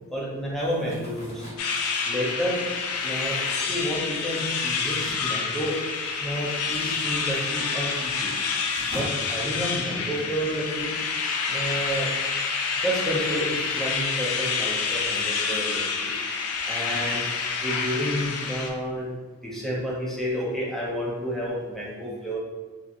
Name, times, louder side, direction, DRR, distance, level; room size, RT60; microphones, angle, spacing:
voice 1, 0.1-1.4 2.1-2.6 3.0-3.4 3.7-5.8 6.2-8.3 8.9-10.9 11.5-12.1 12.8-16.1 16.7-17.2 17.6-19.1 19.4-22.4, equal, ahead, -6 dB, 0.5 m, -30 dB
sound 1, 0.6-6.0 6.3-10.2, left 1 dB, 30° left, 0.9 m, -44 dB
sound 2, 1.6-18.7, left 5 dB, 80° left, 0.4 m, -28 dB
2.8 x 2.5 x 2.5 m, 1.3 s
head